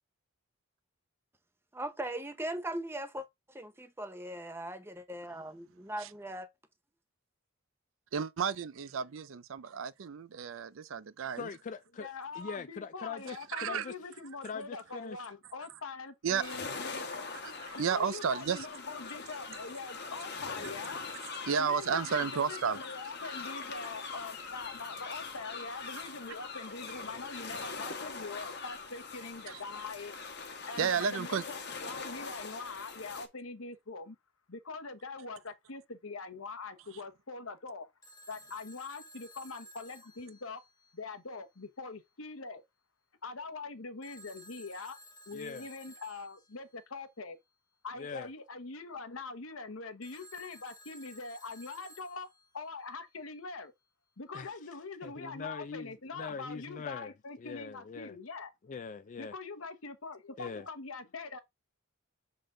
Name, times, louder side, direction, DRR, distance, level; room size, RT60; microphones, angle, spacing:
voice 1, 1.8-6.5, right 1 dB, 10° right, 0.7 m, -39 dB
voice 2, 8.1-11.5 13.5-13.9 16.2-16.5 17.4-18.7 21.5-22.8 29.5-29.6 30.8-31.4, right 6 dB, 65° right, 0.5 m, -32 dB
voice 3, 11.4-13.9 14.4-15.2 45.3-45.7 48.0-48.3 54.3-54.5 55.0-58.2 58.6-59.3 60.4-60.7, left 5 dB, 35° left, 0.4 m, -42 dB
voice 4, 12.0-17.3 17.7-21.0 21.5-30.1 30.6-34.2 34.5-37.9 38.3-40.6 40.9-42.6 43.2-45.0 45.3-47.4 47.8-52.3 52.5-53.7 54.2-58.5 59.2-61.4, left 3 dB, 70° left, 1.0 m, -43 dB
sound 1, 16.3-33.3, left 4 dB, 50° left, 1.2 m, -42 dB
Telephone, 38.0-41.1 44.0-46.6 50.0-52.7, equal, 15° left, 1.3 m, -55 dB
6.7 x 3.9 x 3.8 m
head